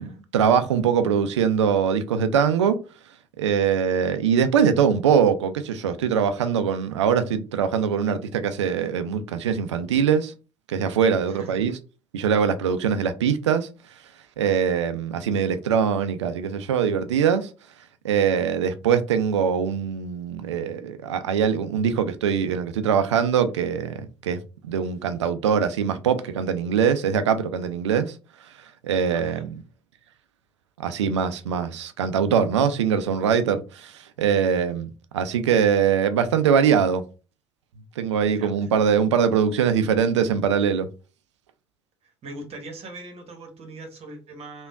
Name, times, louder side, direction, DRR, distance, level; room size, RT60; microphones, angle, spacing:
voice 1, 0.0-2.8 3.4-10.3 10.7-11.7 12.1-13.7 14.4-17.5 18.0-28.1 28.8-29.5 30.8-37.0 38.0-40.9, right 7 dB, 80° right, 0.4 m, -22 dB
voice 2, 11.3-11.7 29.1-29.5 38.2-38.7 42.0-44.7, right 2 dB, 45° right, 1.0 m, -41 dB
3.4 x 2.2 x 2.4 m
figure-of-eight pair, 60°, 15 cm